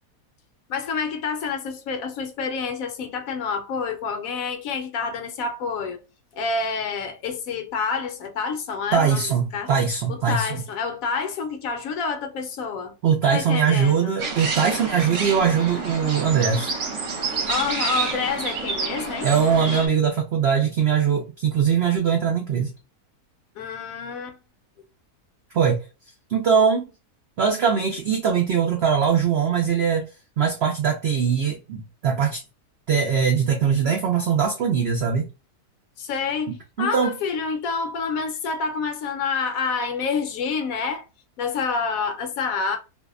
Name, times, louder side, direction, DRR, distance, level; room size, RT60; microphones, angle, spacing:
voice 1, 0.7-6.0 6.3-9.7 10.1-12.9 13.3-14.2 17.5-19.3 23.6-24.4 36.0-41.0 41.4-42.8, left 5 dB, 70° left, 0.9 m, -28 dB
voice 2, 8.9-10.6 13.0-16.7 19.2-22.7 25.5-25.8 26.3-26.8 27.4-30.0 30.4-32.4 32.9-35.3 36.5-37.1, right 7 dB, 75° right, 0.5 m, -21 dB
sound 1, 14.2-19.9, right 4 dB, 60° right, 1.0 m, -29 dB
2.6 x 2.1 x 2.3 m
omnidirectional pair, 1.6 m